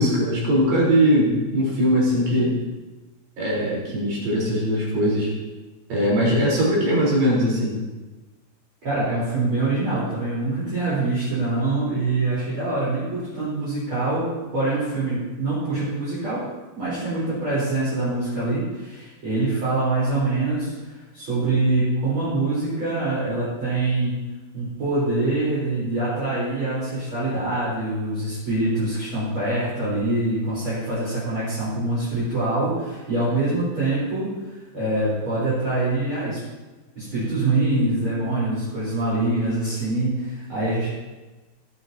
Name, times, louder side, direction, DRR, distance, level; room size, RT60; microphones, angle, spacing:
voice 1, 0.0-2.6 3.4-5.3 5.9-7.8, equal, 50° right, -6 dB, 5.7 m, -20 dB
voice 2, 8.8-16.4 16.8-24.1 24.5-34.3 34.7-36.4 37.0-40.9, right 2 dB, 30° right, -10 dB, 4.2 m, -24 dB
18.5 x 9.9 x 2.9 m, 1.2 s
omnidirectional pair, 5.6 m